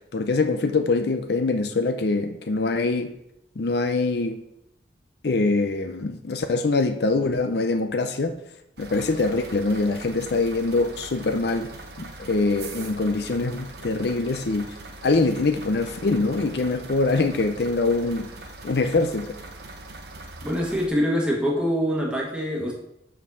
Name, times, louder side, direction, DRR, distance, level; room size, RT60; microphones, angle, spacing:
voice 1, 0.1-3.1 3.6-4.4 5.2-8.4 8.8-11.7 12.0-14.7 15.0-18.3 18.6-19.4, left 3 dB, 60° left, 7 dB, 0.5 m, -24 dB
old red London bus (Routemaster) engine idling, 8.8-20.9, right 2 dB, 60° right, 0.8 m, -41 dB
voice 2, 20.4-22.7, equal, 5° right, -2 dB, 1.3 m, -24 dB
5.5 x 4.7 x 6.1 m, 0.80 s
head